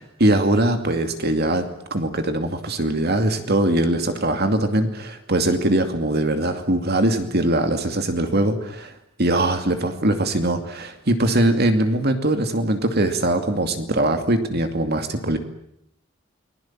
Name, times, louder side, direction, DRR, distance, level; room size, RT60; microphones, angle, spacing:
voice 1, 0.2-8.9 9.2-15.4, right 1 dB, 50° right, 7 dB, 2.5 m, -21 dB
30.0 x 21.0 x 7.4 m, 0.75 s
head